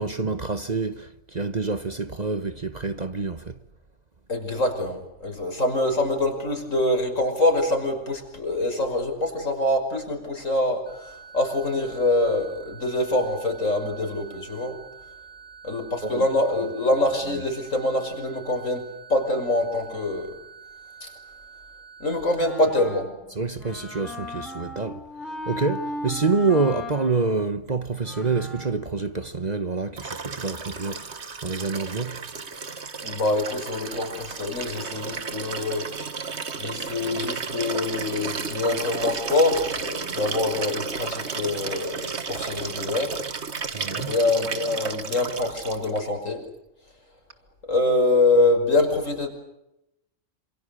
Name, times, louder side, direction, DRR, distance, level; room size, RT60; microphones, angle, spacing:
voice 1, 0.0-3.6 16.0-16.2 23.3-25.0 25.5-31.2 31.4-32.2 43.7-44.1, right 4 dB, 35° right, 1.1 m, -27 dB
voice 2, 4.3-14.8 15.6-20.3 21.0-21.1 22.0-23.1 33.0-35.8 36.6-43.2 43.9-46.4 47.7-49.3, left 2 dB, 75° left, 6.0 m, -25 dB
sound 1, 10.9-22.3, right 6 dB, 80° right, 7.3 m, -47 dB
Wind instrument woodwind instrument, 22.4-28.9, left 1 dB, ahead, 4.5 m, -37 dB
Liquid, 30.0-46.0 47.3-47.4, right 5 dB, 55° right, 1.8 m, -33 dB
28.0 x 27.0 x 6.7 m
omnidirectional pair, 1.4 m